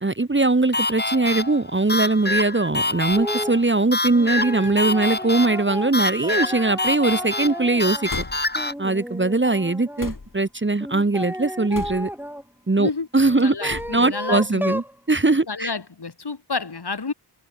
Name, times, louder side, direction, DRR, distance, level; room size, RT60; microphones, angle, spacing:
voice 1, 0.0-8.1 8.8-12.1 12.7-15.7, right 2 dB, 25° right, 1.5 m, -21 dB
sound 1, 0.7-8.7, left 2 dB, 25° left, 2.5 m, -26 dB
sound 2, 3.0-3.3 4.1-4.2 5.4-5.7 5.9-6.5 8.1-8.6 10.0-10.5 11.7-12.2 13.7-14.1, left 3 dB, 50° left, 4.0 m, -37 dB
sound 3, 3.2-3.6 4.1-8.1 8.5-10.1 10.8-12.4 13.2-14.9, equal, 5° right, 7.9 m, -33 dB
voice 2, 13.4-14.8 15.5-17.1, left 4 dB, 65° left, 6.1 m, -29 dB
cardioid pair, 50°, 42 cm